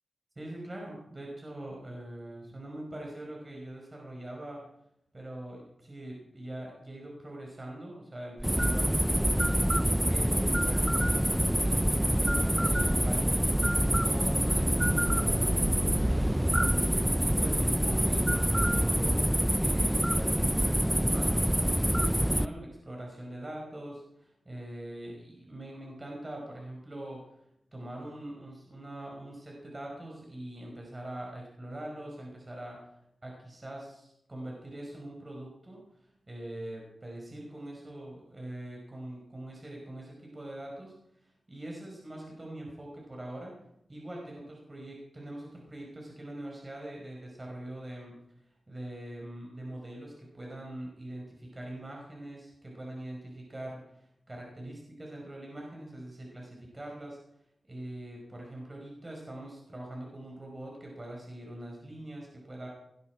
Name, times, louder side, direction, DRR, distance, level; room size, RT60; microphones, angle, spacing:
voice 1, 0.4-4.6 5.1-9.0 9.5-15.5 16.1-19.2 19.6-27.3 27.7-32.8 33.2-35.8 36.3-40.9 41.2-43.5 43.9-48.2 48.7-57.2 57.7-62.7, right 1 dB, 30° right, -1 dB, 5.3 m, -43 dB
sound 1, 8.4-22.5, equal, 5° right, 0.5 m, -26 dB
19.0 x 11.5 x 4.9 m, 0.78 s
wide cardioid pair, 70°, 0 cm